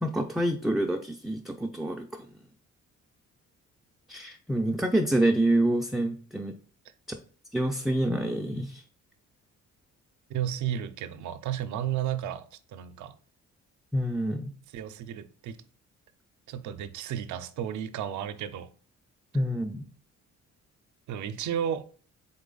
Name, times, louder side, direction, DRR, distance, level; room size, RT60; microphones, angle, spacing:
voice 1, 0.0-2.3 4.1-6.5 7.5-8.8 13.9-14.5 19.3-19.9, right 1 dB, ahead, 0.3 m, -27 dB
voice 2, 10.3-13.2 14.7-15.6 16.5-18.7 21.1-21.8, right 10 dB, 75° right, 0.5 m, -33 dB
4.0 x 3.2 x 3.8 m
cardioid pair, 90°, 30 cm